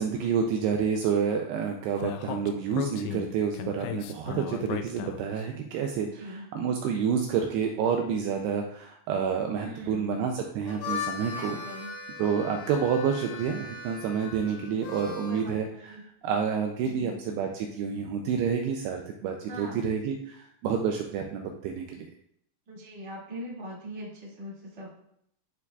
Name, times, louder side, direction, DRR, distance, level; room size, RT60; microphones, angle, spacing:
voice 1, 0.0-11.6 12.2-15.7 16.2-22.1, right 7 dB, 85° right, 3 dB, 2.4 m, -29 dB
Speech, 2.0-5.4, left 11 dB, 90° left, 2.9 m, -36 dB
voice 2, 6.0-6.5 9.6-10.2 11.3-11.9 14.4-14.9 15.3-16.0 16.8-17.2 19.5-19.8 22.7-24.9, equal, 45° right, -6 dB, 0.7 m, -41 dB
Harmonica, 10.5-15.5, left 6 dB, 70° left, 2.9 m, -38 dB
11.0 x 4.6 x 2.3 m, 0.71 s
omnidirectional pair, 5.2 m